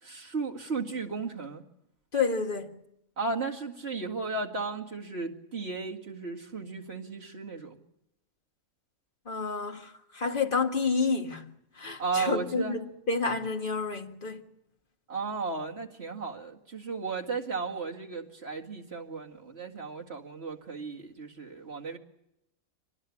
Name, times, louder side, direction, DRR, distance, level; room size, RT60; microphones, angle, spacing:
voice 1, 0.0-1.6 3.2-7.8 12.0-12.8 15.1-22.0, right 4 dB, 45° right, 2.3 m, -35 dB
voice 2, 2.1-2.8 9.3-11.5 11.8-14.4, left 4 dB, 35° left, 2.0 m, -29 dB
25.0 x 19.0 x 8.5 m
omnidirectional pair, 1.5 m